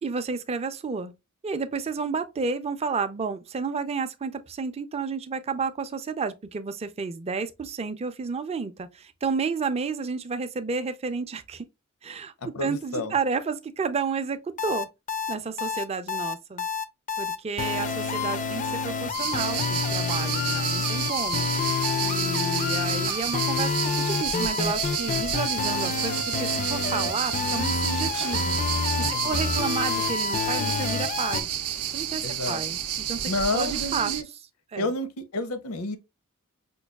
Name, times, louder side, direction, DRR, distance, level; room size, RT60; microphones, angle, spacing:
voice 1, 0.0-1.1 1.4-11.7 12.0-14.9 15.3-16.7 17.2-21.5 22.0-28.6 29.0-31.5 31.9-32.8 33.1-34.1 34.7-34.9, right 5 dB, 30° right, 0.4 m, -31 dB
voice 2, 12.4-13.1 29.0-29.5 32.2-32.6 33.3-34.3 34.7-36.0, left 2 dB, 75° left, 0.7 m, -30 dB
sound 1, 14.6-31.4, left 5 dB, 35° left, 0.4 m, -28 dB
sound 2, 19.1-34.2, right 10 dB, 80° right, 0.5 m, -30 dB
5.2 x 2.3 x 2.2 m
head